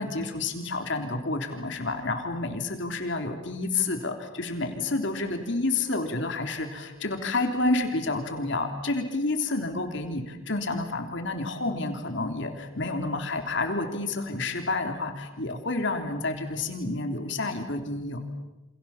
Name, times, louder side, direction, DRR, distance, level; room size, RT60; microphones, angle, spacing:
voice 1, 0.0-18.3, left 2 dB, 60° left, 4 dB, 3.4 m, -29 dB
29.0 x 28.0 x 7.3 m, 0.99 s
head